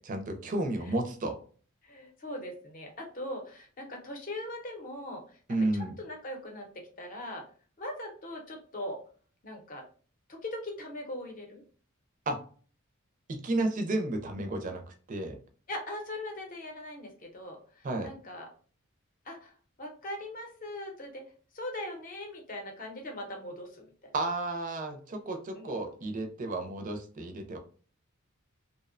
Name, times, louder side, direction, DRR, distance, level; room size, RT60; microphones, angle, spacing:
voice 1, 0.1-1.4 5.5-5.9 12.3-12.4 13.3-15.4 17.8-18.1 24.1-27.6, right 2 dB, 40° right, 5 dB, 0.4 m, -32 dB
voice 2, 1.8-5.4 5.7-7.4 7.8-9.0 9.4-9.8 10.3-11.6 15.7-18.5 19.3-19.5 19.8-21.2 21.5-24.1 25.6-25.8, left 1 dB, 40° left, 2 dB, 0.6 m, -40 dB
2.7 x 2.1 x 2.5 m, 0.41 s
head